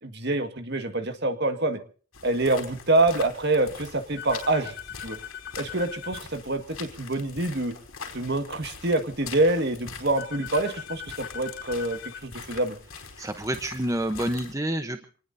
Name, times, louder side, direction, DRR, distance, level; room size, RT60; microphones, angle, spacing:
voice 1, 0.0-1.8 2.2-4.8 5.0-5.2 5.6-7.7 8.1-12.8, right 2 dB, 50° right, 7 dB, 1.9 m, -26 dB
sound 1, 2.1-14.5, left 5 dB, 80° left, 4.5 m, -43 dB
sound 2, 4.2-6.2 10.2-12.2, left 9 dB, 60° left, 3.7 m, -40 dB
voice 2, 13.2-15.0, right 1 dB, 15° right, 7 dB, 0.9 m, -28 dB
26.5 x 19.5 x 2.8 m, 0.40 s
head